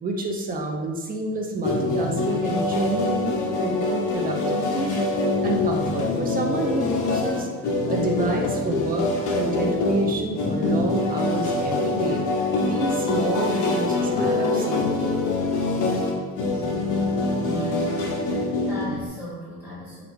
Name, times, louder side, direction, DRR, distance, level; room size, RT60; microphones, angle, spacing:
voice 1, 0.0-4.9 5.4-7.5 7.9-12.2 12.6-15.0, right 2 dB, 25° right, 2 dB, 0.3 m, -28 dB
sound 1, 1.6-19.1, left 2 dB, 60° left, 0.7 m, -24 dB
voice 2, 17.2-20.0, left 1 dB, 5° right, -10 dB, 1.5 m, -38 dB
3.3 x 2.4 x 3.1 m, 1.3 s
cardioid pair, 145°, 35 cm